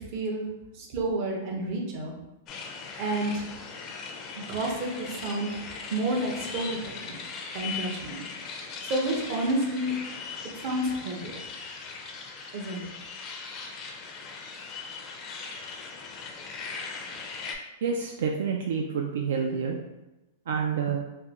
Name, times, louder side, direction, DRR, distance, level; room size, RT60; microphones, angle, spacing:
voice 1, 0.1-0.5 0.7-2.1 3.0-3.5 4.4-5.6 5.9-7.2 7.5-8.2 8.8-10.0 10.6-11.4 12.5-12.9, right 1 dB, 45° right, 0 dB, 0.7 m, -30 dB
sound 1, 2.5-17.6, left 5 dB, 25° left, 0.4 m, -39 dB
voice 2, 17.8-19.8 20.5-21.0, right 6 dB, 80° right, 1 dB, 0.3 m, -28 dB
3.6 x 2.1 x 2.9 m, 0.99 s
supercardioid pair, 150°, 0 cm